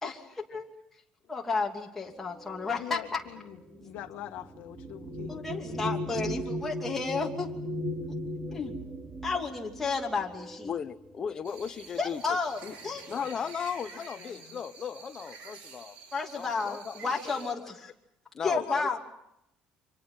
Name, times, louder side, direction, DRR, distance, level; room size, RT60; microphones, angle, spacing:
voice 1, 0.0-0.7 1.3-3.2 5.3-7.5 8.5-8.7 9.2-10.7 12.0-13.0 16.1-17.9 18.4-19.0, left 4 dB, 10° left, -1 dB, 2.8 m, -32 dB
sound 1, 2.4-11.3 12.2-12.3 12.7-13.3, equal, 20° right, 2.6 m, -38 dB
voice 2, 2.8-5.4 14.2-14.6 18.5-18.8, left 14 dB, 70° left, 5 dB, 1.5 m, -42 dB
voice 3, 10.6-12.2 12.6-12.7 13.1-16.0 16.3-17.7 18.3-19.0, left 7 dB, 25° left, 8 dB, 1.1 m, -37 dB
sound 2, 11.4-17.5, right 5 dB, 65° right, 4.6 m, -49 dB
30.0 x 25.5 x 5.7 m, 0.81 s
cardioid pair, 175°, 3 cm